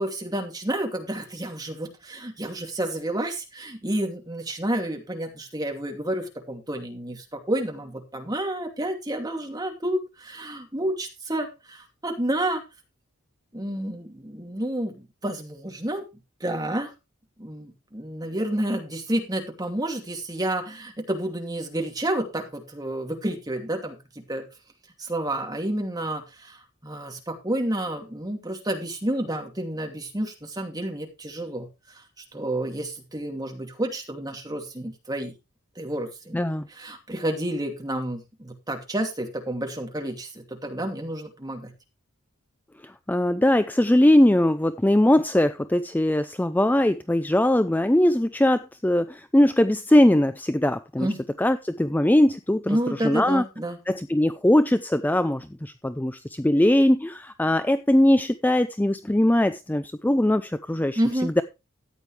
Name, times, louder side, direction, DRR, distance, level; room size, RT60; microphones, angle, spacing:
voice 1, 0.0-12.6 13.5-16.0 16.4-16.9 17.4-24.0 24.3-24.5 25.0-26.6 26.8-31.7 32.3-35.3 35.8-36.4 36.7-41.7 51.0-51.2 52.7-53.8 61.0-61.4, right 1 dB, 20° right, 3 dB, 2.6 m, -30 dB
voice 2, 36.3-36.6 42.8-51.1 51.4-52.8 53.0-53.4 53.9-61.4, left 1 dB, 10° left, 12 dB, 0.5 m, -21 dB
14.0 x 9.2 x 3.3 m, 0.27 s
head